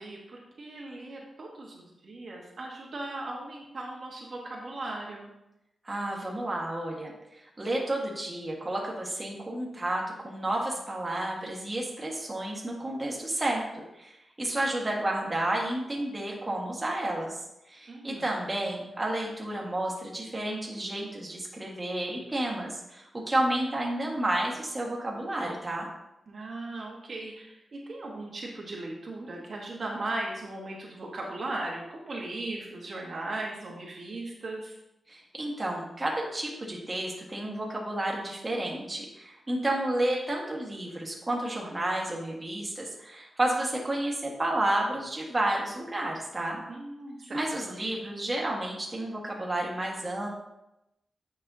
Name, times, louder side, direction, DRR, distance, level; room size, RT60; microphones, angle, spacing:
voice 1, 0.0-5.3 17.9-18.3 26.3-34.7 46.7-47.5, right 2 dB, 55° right, -2 dB, 1.2 m, -38 dB
voice 2, 5.8-7.1 7.6-25.9 35.1-46.6 47.3-50.3, right 1 dB, 25° right, -2 dB, 1.5 m, -31 dB
8.6 x 5.4 x 2.7 m, 0.89 s
wide cardioid pair, 95°, 0 cm